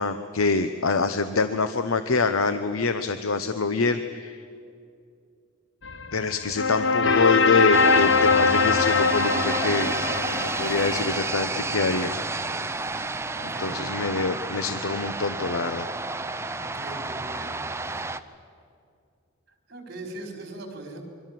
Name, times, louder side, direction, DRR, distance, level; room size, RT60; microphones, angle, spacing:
voice 1, 0.0-4.4 6.1-9.9 10.3-12.2 13.6-15.9, left 4 dB, 85° left, 9 dB, 0.9 m, -25 dB
sound 1, 5.8-11.8, left 4 dB, 60° left, 1.1 m, -23 dB
sound 2, 7.7-18.2, right 3 dB, 15° right, 0.7 m, -30 dB
voice 2, 13.3-13.8 16.6-17.5 19.7-21.0, right 2 dB, 50° right, 3 dB, 4.7 m, -39 dB
27.0 x 24.0 x 7.7 m, 2.4 s
head